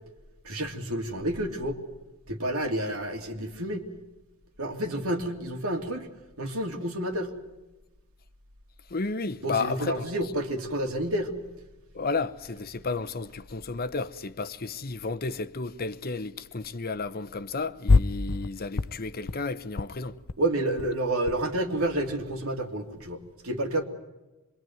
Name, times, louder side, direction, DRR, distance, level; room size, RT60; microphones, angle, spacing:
voice 1, 0.4-1.8 2.3-3.9 4.6-6.1 6.4-7.3 9.4-11.3 20.4-23.8, right 1 dB, 75° right, 2.9 m, -29 dB
voice 2, 8.9-10.1 11.9-20.2, left 4 dB, 45° left, 0.9 m, -32 dB
sound 1, 17.9-18.5 18.8-19.4 19.7-19.9 20.2-20.3 20.6-21.4 21.7-22.6, left 3 dB, 75° left, 0.8 m, -26 dB
26.5 x 22.5 x 9.4 m
head